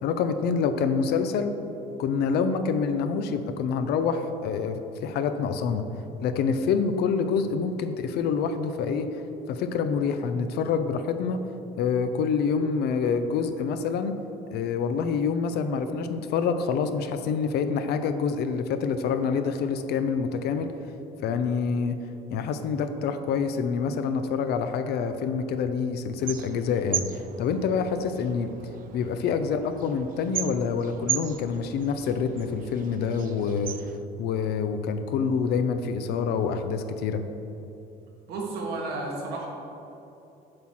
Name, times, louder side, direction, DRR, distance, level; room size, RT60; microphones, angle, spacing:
voice 1, 0.0-1.6 2.0-5.9 6.2-9.2 9.5-11.4 11.8-14.2 14.5-20.7 21.2-22.0 22.3-27.1 27.4-28.5 28.9-33.7 34.2-37.2, left 5 dB, 75° left, 9 dB, 0.6 m, -26 dB
sound 1, 26.2-34.0, right 11 dB, 55° right, 0.4 m, -37 dB
voice 2, 38.3-39.5, right 3 dB, 75° right, -1 dB, 1.6 m, -32 dB
7.4 x 4.3 x 6.2 m, 2.9 s
cardioid pair, 110°, 17 cm